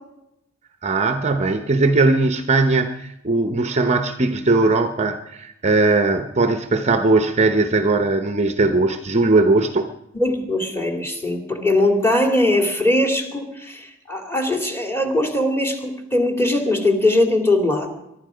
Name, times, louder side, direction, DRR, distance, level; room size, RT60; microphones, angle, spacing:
voice 1, 0.8-9.9, right 3 dB, 30° right, 7 dB, 0.8 m, -19 dB
voice 2, 10.1-17.9, left 1 dB, 10° left, 3 dB, 2.5 m, -20 dB
23.0 x 12.0 x 5.1 m, 0.83 s
head